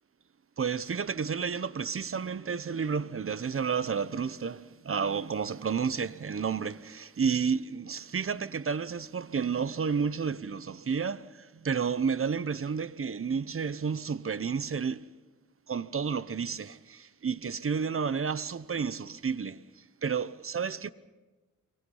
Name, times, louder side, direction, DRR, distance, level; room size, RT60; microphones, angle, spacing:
voice 1, 0.6-15.1 15.7-20.9, right 6 dB, 45° right, 0.9 m, -31 dB
30.0 x 23.5 x 5.6 m
cardioid pair, 65°, 32 cm